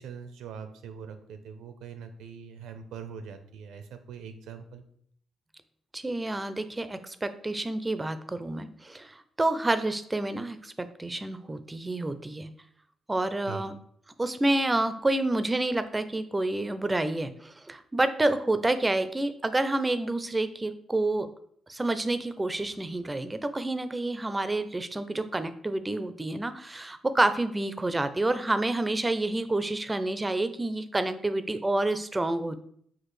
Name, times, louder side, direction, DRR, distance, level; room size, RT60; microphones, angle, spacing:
voice 1, 0.0-4.8 13.5-13.7, right 6 dB, 85° right, 8 dB, 0.5 m, -42 dB
voice 2, 5.9-12.5 13.1-13.7 14.2-21.3 21.7-32.6, right 2 dB, 15° right, 11 dB, 0.4 m, -28 dB
6.0 x 2.4 x 3.1 m, 0.66 s
cardioid pair, 90°, 0 cm